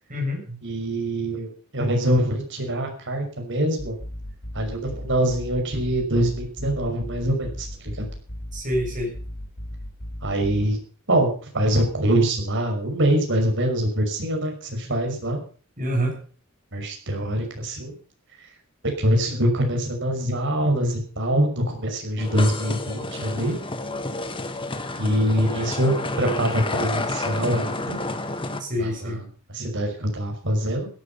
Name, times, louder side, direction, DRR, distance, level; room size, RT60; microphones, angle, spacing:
voice 1, 0.1-0.6 8.5-9.1 15.8-16.2 28.6-29.2, equal, 40° right, 0 dB, 7.3 m, -26 dB
voice 2, 0.6-4.0 4.5-8.1 10.2-10.8 11.1-15.4 16.7-17.9 19.0-23.6 25.0-28.0 28.8-30.9, right 1 dB, 60° right, 3 dB, 5.8 m, -24 dB
sound 1, 3.8-10.6, left 1 dB, 55° left, 3.2 m, -36 dB
sound 2, 22.2-28.6, left 2 dB, 25° left, 1.6 m, -30 dB
16.5 x 11.5 x 5.6 m, 0.41 s
head